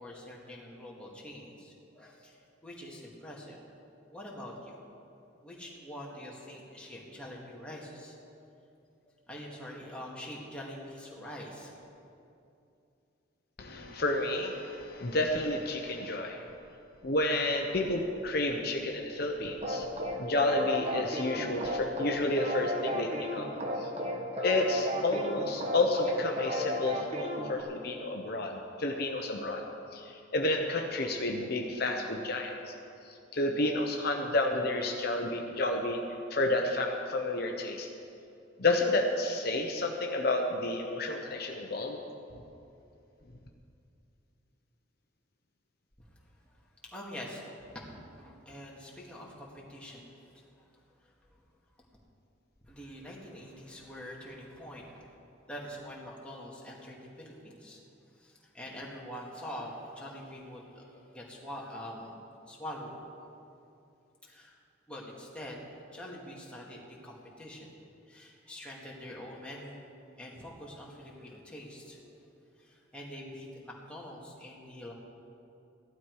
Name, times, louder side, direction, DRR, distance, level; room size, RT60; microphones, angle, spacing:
voice 1, 0.0-3.6 4.1-4.8 5.4-8.2 9.0-11.8 46.4-46.6 46.9-50.6 51.0-51.1 52.6-55.1 55.5-57.8 58.1-62.2 62.5-62.9 64.2-64.6 64.9-67.7 68.1-69.8 70.1-72.1 72.6-74.9, equal, 5° left, -4 dB, 2.0 m, -45 dB
voice 2, 13.6-16.4 17.0-19.9 20.2-23.5 23.8-23.9 24.4-29.6 29.9-32.7 33.3-36.0 36.3-37.9 38.6-42.0, left 2 dB, 55° left, 2 dB, 0.9 m, -30 dB
sound 1, 19.6-27.6, equal, 35° right, 1.3 m, -34 dB
16.0 x 12.0 x 4.7 m, 2.7 s
head